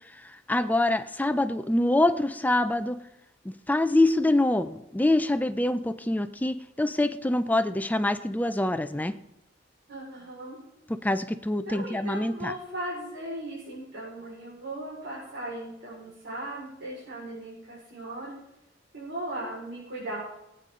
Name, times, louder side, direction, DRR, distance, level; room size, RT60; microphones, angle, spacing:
voice 1, 0.2-3.0 3.5-9.1 10.9-12.5, left 1 dB, 10° left, 11 dB, 0.5 m, -25 dB
voice 2, 9.9-10.6 11.6-18.3 18.9-20.2, right 1 dB, 70° right, -7 dB, 4.9 m, -37 dB
19.5 x 9.2 x 3.8 m, 0.88 s
head